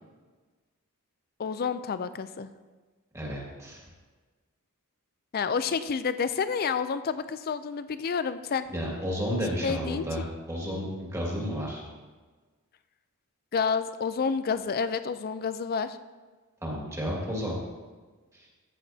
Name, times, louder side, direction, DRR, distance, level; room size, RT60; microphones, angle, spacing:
voice 1, 1.4-2.5 5.3-8.7 9.6-10.1 13.5-16.0, left 5 dB, 45° left, 12 dB, 0.4 m, -29 dB
voice 2, 3.1-3.8 8.7-11.8 16.6-17.6, equal, 15° right, -3 dB, 2.0 m, -32 dB
14.0 x 8.1 x 2.8 m, 1.4 s
head